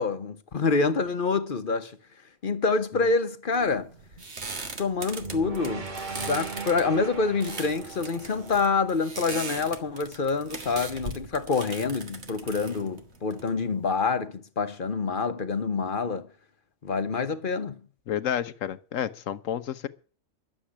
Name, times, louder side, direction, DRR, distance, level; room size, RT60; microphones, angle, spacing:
voice 1, 0.0-1.9 2.4-3.9 4.8-16.3 16.8-17.8, left 4 dB, 40° left, 1.1 m, -27 dB
sound 1, 3.5-13.9, right 3 dB, 55° right, 1.9 m, -40 dB
sound 2, 5.2-9.5, right 4 dB, 35° right, 1.4 m, -38 dB
voice 2, 18.1-19.9, left 10 dB, 75° left, 1.2 m, -30 dB
11.5 x 7.7 x 10.0 m
omnidirectional pair, 1.4 m